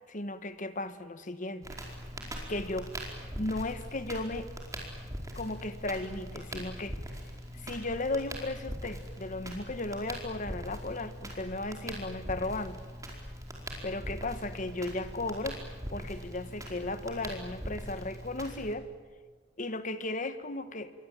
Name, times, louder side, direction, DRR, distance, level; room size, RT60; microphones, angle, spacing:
voice 1, 0.1-1.7 2.5-2.9 3.4-4.5 5.3-7.0 7.5-12.8 13.8-15.6 15.9-18.9 19.6-21.0, left 2 dB, 40° left, 1.5 m, -35 dB
Crackle, 1.6-18.7, equal, 20° right, 4.7 m, -41 dB
27.5 x 22.5 x 9.1 m
head